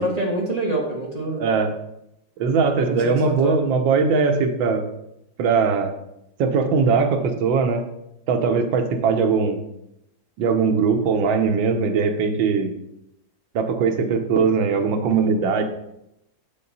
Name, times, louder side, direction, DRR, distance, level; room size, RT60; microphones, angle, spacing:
voice 1, 0.0-1.4 2.8-3.6 8.4-8.7, right 1 dB, 25° right, -1 dB, 1.1 m, -26 dB
voice 2, 1.4-1.7 2.4-4.9 5.4-5.9 6.4-7.8 8.3-9.6 10.4-12.7 13.5-15.6, right 5 dB, 85° right, 6 dB, 1.6 m, -20 dB
7.6 x 5.7 x 4.1 m, 0.83 s
omnidirectional pair, 2.0 m